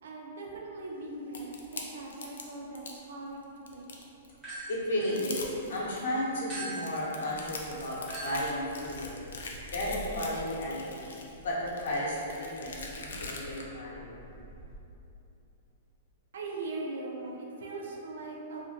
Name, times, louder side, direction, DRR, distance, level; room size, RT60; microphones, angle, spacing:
voice 1, 0.0-3.9 16.3-18.6, right 2 dB, 70° right, -1 dB, 0.5 m, -40 dB
sound 1, 1.3-3.0 3.4-4.3 4.7-4.8 5.0-6.0 6.5-13.6, left 4 dB, 85° left, 0.4 m, -43 dB
sound 2, 4.3-5.8 6.5-14.8, right 1 dB, 10° right, 0.6 m, -46 dB
voice 2, 4.7-9.2 9.7-11.1 11.3-14.2, left 1 dB, 65° left, -6 dB, 0.7 m, -33 dB
2.7 x 2.5 x 2.8 m, 2.9 s
hypercardioid pair, 180°, 0 cm